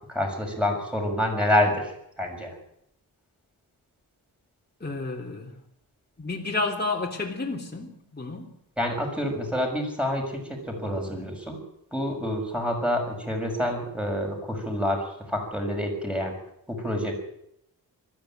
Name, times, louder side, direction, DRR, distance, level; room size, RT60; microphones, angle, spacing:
voice 1, 0.1-1.9 2.2-2.5 8.8-11.6 11.9-16.4 16.7-17.1, left 1 dB, 5° right, 1 dB, 6.7 m, -27 dB
voice 2, 4.8-5.6 6.2-8.5, left 3 dB, 25° left, -2 dB, 3.3 m, -31 dB
20.0 x 14.5 x 9.2 m, 0.76 s
wide cardioid pair, 110°, 39 cm